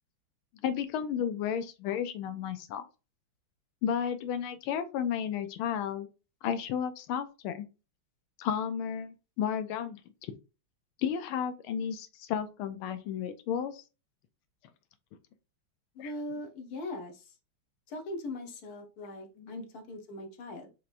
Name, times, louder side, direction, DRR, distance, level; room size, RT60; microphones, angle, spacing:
voice 1, 0.6-2.8 3.8-6.1 6.4-7.7 8.4-10.4 11.0-13.8 16.0-16.1 19.4-19.6, left 8 dB, 80° left, 10 dB, 1.4 m, -33 dB
voice 2, 15.9-17.4 17.9-20.7, left 1 dB, 60° left, 4 dB, 1.1 m, -40 dB
4.7 x 2.9 x 2.5 m, 0.30 s
omnidirectional pair, 2.4 m